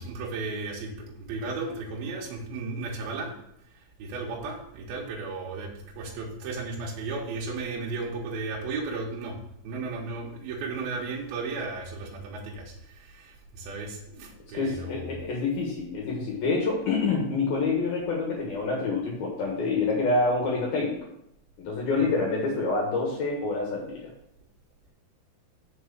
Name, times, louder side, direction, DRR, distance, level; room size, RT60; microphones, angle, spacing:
voice 1, 0.0-3.3 3.6-9.4 9.6-15.1 22.0-22.1, right 3 dB, 70° right, -3 dB, 2.5 m, -35 dB
voice 2, 14.5-21.0 21.6-24.0, left 3 dB, 65° left, -2 dB, 2.6 m, -27 dB
6.7 x 4.6 x 6.7 m, 0.76 s
omnidirectional pair, 5.7 m